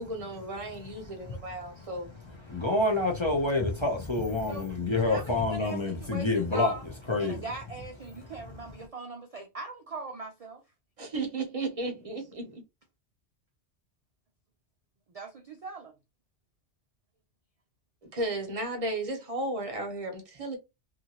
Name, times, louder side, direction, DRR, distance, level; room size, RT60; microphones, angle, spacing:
voice 1, 0.0-2.1 11.0-12.6 18.1-20.6, right 2 dB, 35° right, 0.8 m, -34 dB
voice 2, 2.5-6.7 7.1-7.4, left 2 dB, 35° left, 0.5 m, -27 dB
voice 3, 4.5-6.8 7.2-10.6 15.1-15.9, right 3 dB, 75° right, 0.3 m, -41 dB
2.7 x 2.5 x 2.8 m
omnidirectional pair, 1.2 m